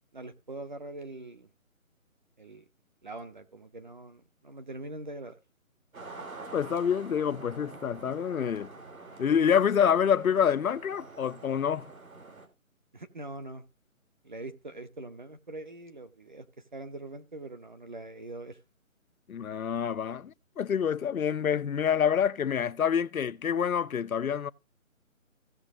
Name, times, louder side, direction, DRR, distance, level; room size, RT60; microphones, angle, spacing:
voice 1, 0.1-1.5 2.4-2.6 3.0-5.4 12.9-13.6 14.2-16.5 16.7-18.6, right 2 dB, 35° right, 0.8 m, -43 dB
sound 1, 5.9-12.5, right 3 dB, 80° right, 2.9 m, -46 dB
voice 2, 6.5-8.7 9.2-11.9 19.3-24.5, left 8 dB, 80° left, 0.7 m, -27 dB
16.0 x 6.4 x 3.6 m
hypercardioid pair, 170°, 41 cm